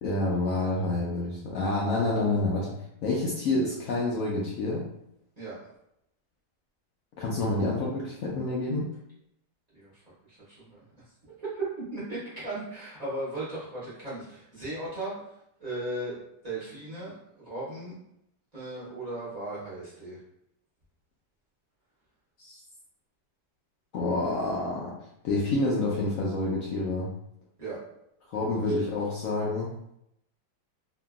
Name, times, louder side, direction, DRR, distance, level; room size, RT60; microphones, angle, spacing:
voice 1, 0.0-2.7 3.0-4.9 7.2-8.9 22.4-22.6 23.9-24.9 25.2-27.1 28.3-29.7, left 2 dB, 85° left, -4 dB, 0.7 m, -28 dB
voice 2, 10.3-10.8 11.3-15.3 15.6-16.2 16.4-17.1 17.4-18.0 18.5-20.2 27.6-27.8 28.8-29.0, right 2 dB, 30° right, -11 dB, 0.8 m, -36 dB
2.9 x 2.5 x 2.3 m, 0.78 s
omnidirectional pair, 2.0 m